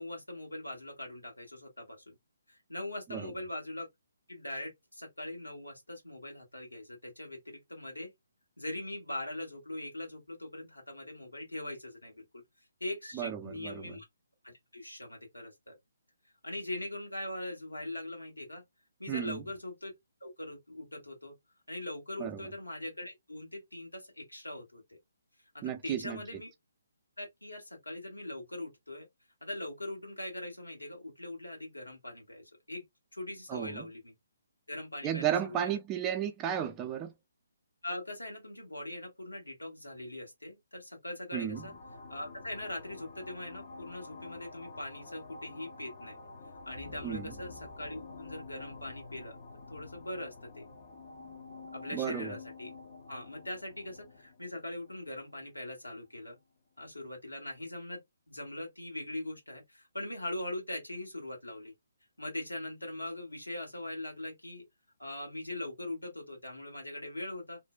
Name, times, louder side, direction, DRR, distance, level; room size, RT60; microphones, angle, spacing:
voice 1, 0.0-2.2 2.5-3.9 4.3-8.1 8.6-12.4 12.8-14.0 14.4-15.8 16.4-18.6 19.0-19.9 20.2-21.4 21.7-25.0 25.5-26.5 27.2-29.1 29.4-32.9 33.1-34.1 34.7-35.8 37.8-41.7 42.1-46.2 46.7-49.4 49.7-50.7 51.7-52.7 53.1-56.4 56.8-61.7 62.2-64.7 65.0-67.6, left 1 dB, 85° left, 1.2 m, -41 dB
voice 2, 13.1-13.9 19.1-19.4 22.2-22.4 25.6-26.2 33.5-33.9 35.0-37.1 41.3-41.7 47.0-47.3 51.9-52.4, right 9 dB, 20° right, 0.4 m, -33 dB
sound 1, 41.5-55.7, left 3 dB, 40° left, 0.6 m, -48 dB
2.6 x 2.1 x 2.4 m
figure-of-eight pair, 135°, 0 cm